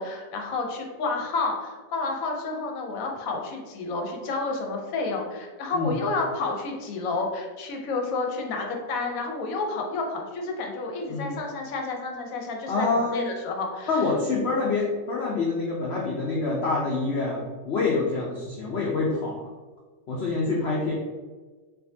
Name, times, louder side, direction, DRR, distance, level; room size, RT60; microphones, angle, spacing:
voice 1, 0.0-13.9, left 3 dB, 65° left, 2 dB, 1.0 m, -30 dB
voice 2, 12.7-13.3 13.9-19.5 20.1-20.9, left 3 dB, 90° left, -4 dB, 0.5 m, -26 dB
4.5 x 2.5 x 2.7 m, 1.4 s
omnidirectional pair, 1.9 m